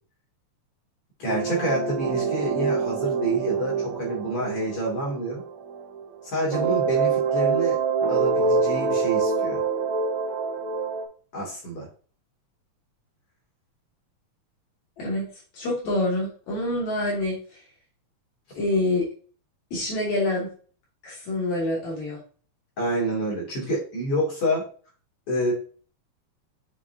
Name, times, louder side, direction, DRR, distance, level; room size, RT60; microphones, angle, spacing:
voice 1, 1.2-5.4 6.2-7.8 8.1-9.6 11.3-11.9 22.8-24.6 25.3-25.5, right 1 dB, 50° left, -2 dB, 3.5 m, -28 dB
sound 1, 1.3-6.1 6.5-11.0, right 5 dB, 70° right, 2.3 m, -25 dB
voice 2, 15.0-15.3 15.5-17.4 18.6-19.1 19.7-20.5 21.0-22.2, left 2 dB, 70° left, -4 dB, 3.7 m, -26 dB
7.0 x 5.9 x 2.8 m, 0.41 s
omnidirectional pair, 3.4 m